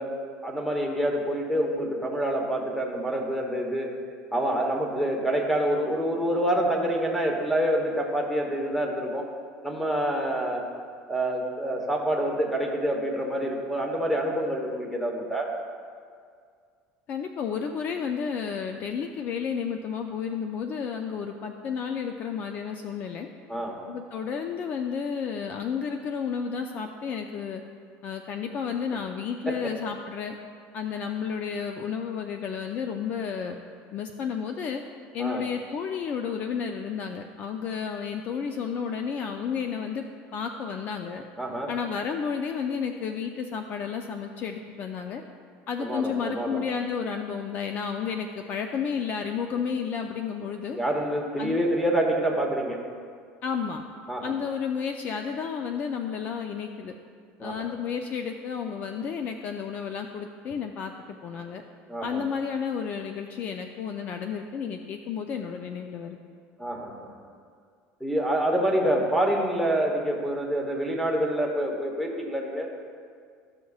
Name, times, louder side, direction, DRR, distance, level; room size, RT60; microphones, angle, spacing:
voice 1, 0.0-3.9 4.3-9.3 9.6-10.6 11.1-15.5 23.5-23.8 29.5-29.6 35.2-35.4 41.4-41.7 45.8-46.6 50.7-52.8 54.1-54.3 57.4-57.7 61.9-62.2 66.6-67.1 68.0-72.7, right 1 dB, ahead, 0 dB, 1.1 m, -27 dB
voice 2, 17.1-23.3 23.9-27.6 28.0-30.3 30.7-33.6 33.9-34.8 35.1-40.0 40.3-41.2 41.7-45.2 45.7-50.8 51.4-51.6 53.4-53.8 54.2-56.9 57.4-61.6 62.0-66.2, left 6 dB, 40° left, 5 dB, 0.4 m, -32 dB
13.5 x 6.0 x 2.4 m, 2.1 s
cardioid pair, 145°, 4 cm